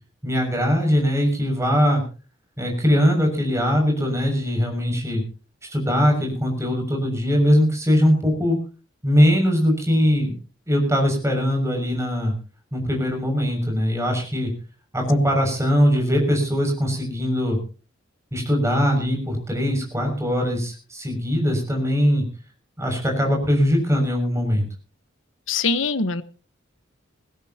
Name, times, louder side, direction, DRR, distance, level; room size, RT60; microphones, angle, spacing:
voice 1, 0.2-2.0 2.6-5.2 5.6-8.6 9.0-10.4 10.7-12.3 12.7-14.5 14.9-17.6 18.3-22.2 22.8-24.6, equal, 15° right, 2 dB, 6.6 m, -21 dB
voice 2, 25.5-26.2, left 4 dB, 80° left, 12 dB, 1.2 m, -22 dB
21.5 x 16.5 x 2.9 m, 0.36 s
head